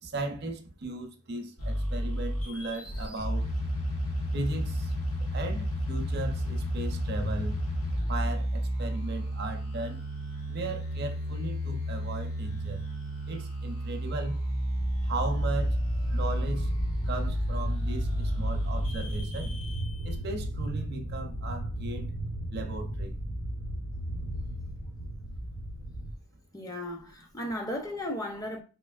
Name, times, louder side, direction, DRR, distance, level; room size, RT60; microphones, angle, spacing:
voice 1, 0.0-3.5 4.3-4.9 5.3-7.6 8.1-10.0 10.5-12.8 13.2-14.4 15.0-16.7 17.0-19.5 20.0-22.1 22.5-23.1, right 2 dB, 45° right, 0.6 m, -36 dB
sound 1, 1.6-20.1, equal, 90° left, 1.4 m, -31 dB
sound 2, 14.8-26.1, right 1 dB, 70° left, 1.1 m, -35 dB
voice 2, 26.5-28.6, left 1 dB, 15° left, 0.5 m, -35 dB
4.3 x 2.8 x 2.3 m
head